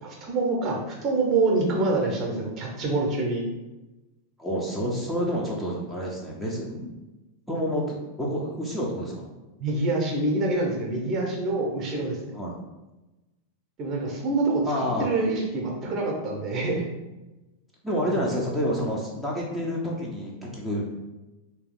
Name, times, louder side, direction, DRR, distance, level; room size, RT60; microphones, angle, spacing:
voice 1, 0.0-3.4 9.6-12.3 13.8-16.8 17.9-18.4, right 2 dB, 35° right, 0 dB, 1.0 m, -26 dB
voice 2, 4.4-6.9 7.5-9.3 12.3-12.5 14.6-15.1 17.8-20.9, equal, 5° left, -5 dB, 0.8 m, -29 dB
3.3 x 2.9 x 3.9 m, 1.1 s
figure-of-eight pair, 90°, 0 cm